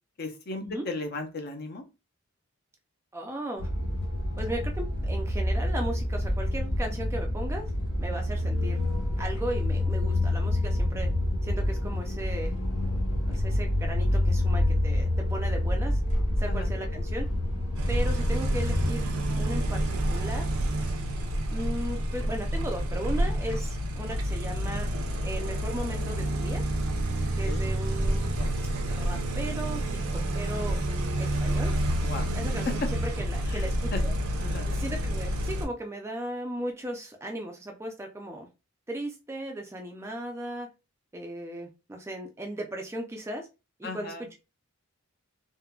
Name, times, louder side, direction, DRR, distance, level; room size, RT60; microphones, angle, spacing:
voice 1, 0.2-1.8 16.5-16.7 27.1-27.8 32.0-32.3 32.7-32.8 33.5-34.0 34.4-34.7 43.8-44.3, left 3 dB, 45° left, 4 dB, 0.5 m, -36 dB
voice 2, 3.1-3.7 4.4-7.7 8.0-8.8 9.2-11.1 11.4-12.5 13.3-16.0 16.4-17.3 17.9-19.1 19.3-19.8 20.1-20.5 21.5-24.9 25.2-26.6 27.4-28.3 28.9-29.9 30.3-30.8 31.2-31.7 32.3-34.1 34.7-38.5 38.9-40.7 41.1-43.5 43.8-44.1, right 1 dB, 10° right, 3 dB, 0.3 m, -36 dB
sound 1, 3.6-18.9, left 1 dB, 90° left, 0.8 m, -27 dB
sound 2, 17.8-35.7, right 1 dB, 70° right, 0.6 m, -29 dB
3.6 x 2.1 x 2.2 m, 0.28 s
head